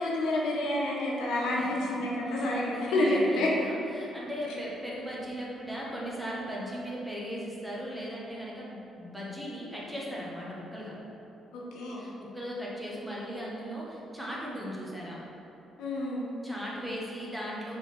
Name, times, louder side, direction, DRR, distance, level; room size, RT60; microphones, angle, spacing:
voice 1, 0.0-3.5 4.5-4.6 11.5-12.1 15.8-16.3, left 1 dB, 90° left, -4 dB, 1.1 m, -29 dB
voice 2, 2.3-10.9 12.0-15.2 16.4-17.8, equal, 5° right, -5 dB, 1.4 m, -38 dB
5.9 x 3.8 x 4.4 m, 3.0 s
cardioid pair, 90°, 0 cm